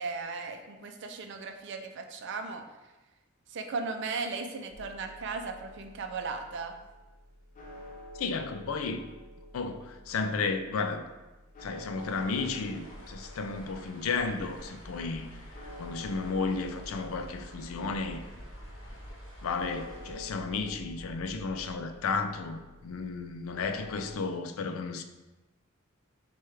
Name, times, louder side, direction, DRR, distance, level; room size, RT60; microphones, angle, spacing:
voice 1, 0.0-2.6 3.5-6.8, right 4 dB, 60° right, 0.5 m, -36 dB
sound 1, 4.7-24.1, left 1 dB, 40° left, 0.6 m, -50 dB
voice 2, 8.1-9.0 9.5-11.1 11.6-15.4 15.8-18.2 19.4-25.0, left 4 dB, 90° left, 0.4 m, -33 dB
sound 2, 12.0-20.2, equal, 65° left, 0.9 m, -50 dB
Mechanical fan, 14.7-21.7, equal, 10° right, 1.1 m, -49 dB
6.3 x 2.3 x 3.3 m
head